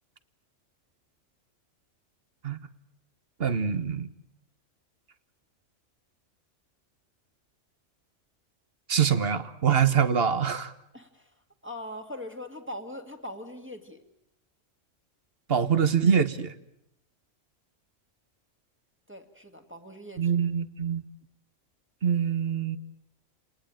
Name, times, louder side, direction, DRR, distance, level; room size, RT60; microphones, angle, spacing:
voice 1, 3.4-4.1 8.9-10.7 15.5-16.5 20.2-21.0 22.0-22.8, right 7 dB, 50° right, 12 dB, 1.4 m, -24 dB
voice 2, 10.9-11.3 11.6-14.0 19.1-20.4, left 1 dB, 10° right, 4 dB, 2.0 m, -41 dB
30.0 x 19.5 x 9.0 m, 0.80 s
omnidirectional pair, 1.3 m